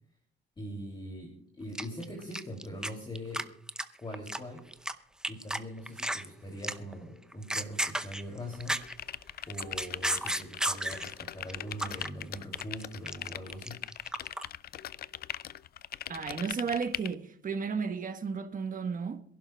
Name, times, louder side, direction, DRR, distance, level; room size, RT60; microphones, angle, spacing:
voice 1, 0.6-1.3 1.6-3.4 4.0-4.6 5.3-8.8 9.5-13.8, equal, 25° left, 2.9 m, -42 dB
sound 1, 1.8-2.9 3.2-3.4 3.7-4.9 5.2-5.6 5.9-6.3 6.6-6.9 7.3-9.0 9.4-11.1 11.5-12.1 12.4-14.5, right 1 dB, 5° right, 0.6 m, -33 dB
sound 2, 8.8-17.1, left 11 dB, 50° left, 0.4 m, -40 dB
voice 2, 16.1-19.2, right 5 dB, 40° right, 1.3 m, -33 dB
26.5 x 11.5 x 2.3 m
cardioid pair, 90°, 20 cm